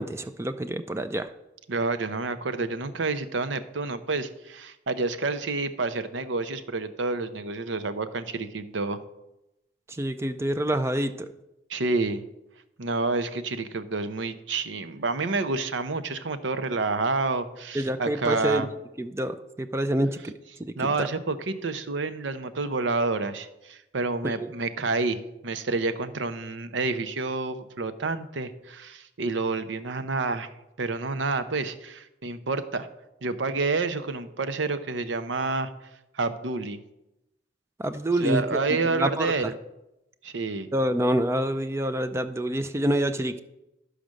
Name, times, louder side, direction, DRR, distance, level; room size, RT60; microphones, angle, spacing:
voice 1, 0.0-1.3 10.0-11.3 17.7-18.7 19.0-20.3 20.6-21.1 24.2-24.5 37.8-38.6 38.9-39.5 40.7-43.4, right 1 dB, 15° right, 10 dB, 0.4 m, -27 dB
voice 2, 1.7-9.0 11.7-12.2 12.8-18.7 20.8-30.5 30.8-32.9 33.2-35.7 36.1-36.8 38.2-39.5 40.2-40.7, right 3 dB, 85° right, 11 dB, 0.7 m, -29 dB
12.0 x 5.0 x 6.3 m, 0.92 s
head